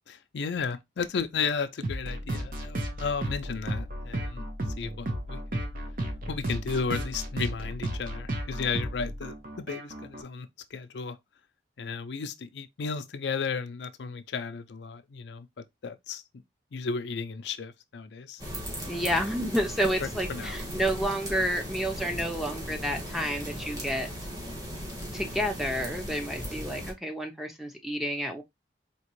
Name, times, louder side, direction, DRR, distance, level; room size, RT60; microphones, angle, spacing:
voice 1, 0.1-4.4 4.8-5.6 6.3-11.2 11.8-16.2 16.7-18.4 20.0-20.6, left 5 dB, 75° left, 0.5 m, -34 dB
sound 1, 1.8-10.2, right 1 dB, 50° right, 0.9 m, -34 dB
sound 2, 18.4-26.9, equal, 20° right, 1.5 m, -37 dB
voice 2, 18.8-24.1 25.1-28.4, equal, ahead, 0.7 m, -30 dB
4.2 x 2.9 x 3.0 m
head